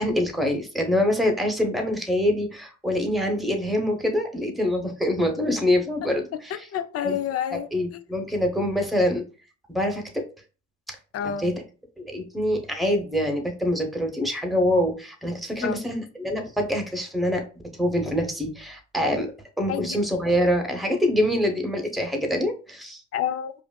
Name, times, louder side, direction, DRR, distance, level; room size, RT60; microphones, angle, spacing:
voice 1, 0.0-6.7 7.0-7.2 7.5-9.2 9.7-10.2 11.4-11.5 12.0-17.4 17.8-19.3 19.6-23.0, left 1 dB, ahead, 0.9 m, -25 dB
voice 2, 6.5-8.0 11.1-11.5 15.6-15.8 19.7-20.0 23.1-23.5, left 9 dB, 55° left, 0.4 m, -29 dB
4.8 x 2.6 x 2.2 m
cardioid pair, 90°, 30 cm